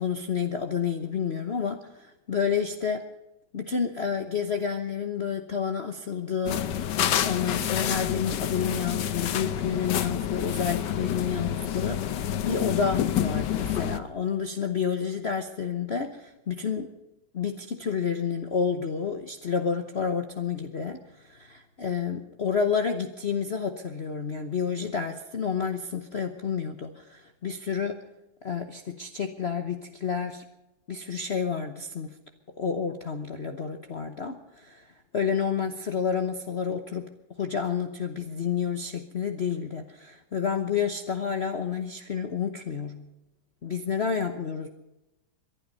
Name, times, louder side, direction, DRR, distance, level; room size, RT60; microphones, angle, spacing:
voice 1, 0.0-3.0 3.5-7.0 7.2-16.9 17.3-28.0 28.4-30.4 30.9-32.2 32.6-37.1 37.4-43.1 43.6-44.7, left 6 dB, 45° left, 6 dB, 1.0 m, -30 dB
sound 1, 6.5-14.0, left 10 dB, 65° left, 1.4 m, -28 dB
22.0 x 12.0 x 5.4 m, 0.95 s
omnidirectional pair, 2.2 m